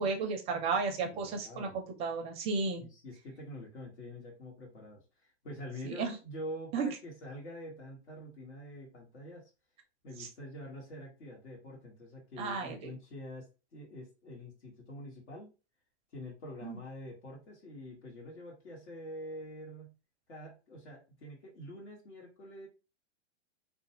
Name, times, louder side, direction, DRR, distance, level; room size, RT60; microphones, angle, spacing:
voice 1, 0.0-2.9 5.9-6.1 6.7-6.9 10.2-10.3 12.4-12.9 16.6-16.8, right 4 dB, 20° right, 4 dB, 0.4 m, -33 dB
voice 2, 1.1-1.8 2.8-9.5 10.0-15.5 16.1-20.0 20.3-22.7, left 1 dB, 80° left, -4 dB, 1.4 m, -46 dB
2.5 x 2.2 x 2.8 m, 0.30 s
hypercardioid pair, 125°, 34 cm